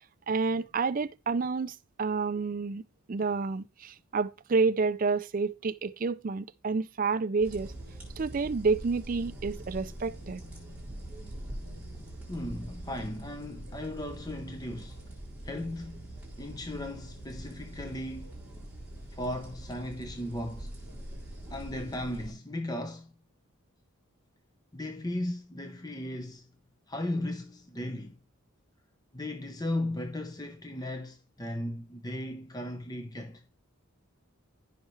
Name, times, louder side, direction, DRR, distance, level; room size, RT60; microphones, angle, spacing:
voice 1, 0.3-2.8 3.1-7.7 8.2-10.4, right 4 dB, 40° right, 0.4 m, -29 dB
sound 1, 7.4-22.3, right 1 dB, 5° right, 3.9 m, -43 dB
voice 2, 12.3-15.0 15.4-16.1 16.4-18.4 19.1-20.7 21.5-23.1 24.7-26.5 26.9-28.2 29.1-33.4, left 1 dB, 15° left, 0.7 m, -36 dB
14.0 x 5.7 x 3.2 m
head